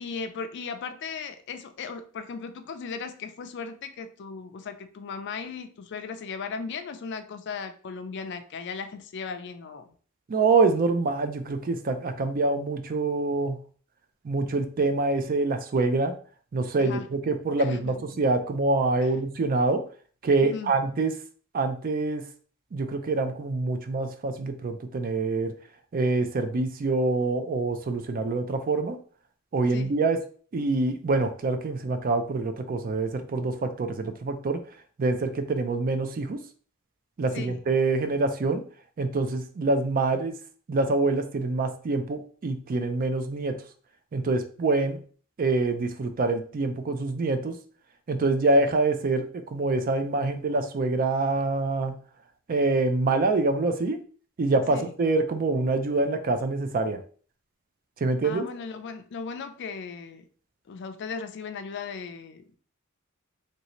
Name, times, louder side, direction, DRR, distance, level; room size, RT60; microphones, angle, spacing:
voice 1, 0.0-9.9 16.8-17.1 17.6-17.9 19.0-19.1 20.4-20.7 29.7-29.9 37.3-37.6 54.7-54.9 58.2-60.3 60.7-62.6, left 5 dB, 55° left, 8 dB, 0.4 m, -37 dB
voice 2, 10.3-13.6 14.2-16.1 16.5-19.8 20.2-21.1 21.5-22.2 22.7-25.5 25.9-29.0 29.5-30.2 30.5-34.6 35.0-36.4 37.2-38.6 39.0-40.4 40.7-43.6 44.1-45.0 45.4-47.6 48.1-51.9 52.5-54.0 54.4-57.0 58.0-58.5, right 3 dB, 45° right, 8 dB, 0.4 m, -25 dB
3.1 x 2.6 x 2.9 m, 0.43 s
head